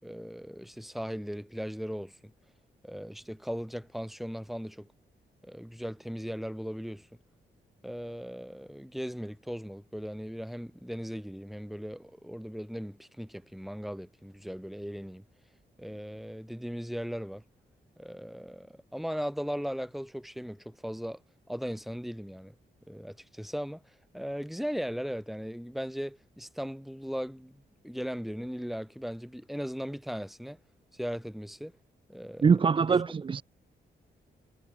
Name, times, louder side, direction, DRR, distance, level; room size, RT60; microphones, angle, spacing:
voice 1, 0.0-2.3 2.8-4.9 5.4-7.1 7.8-15.2 15.8-17.4 18.0-21.2 21.5-22.6 22.9-30.6 30.9-31.8 32.1-33.0, equal, ahead, 5.4 m, -38 dB
voice 2, 32.4-33.4, right 5 dB, 25° right, 0.4 m, -23 dB
wide cardioid pair, 115°, 19 cm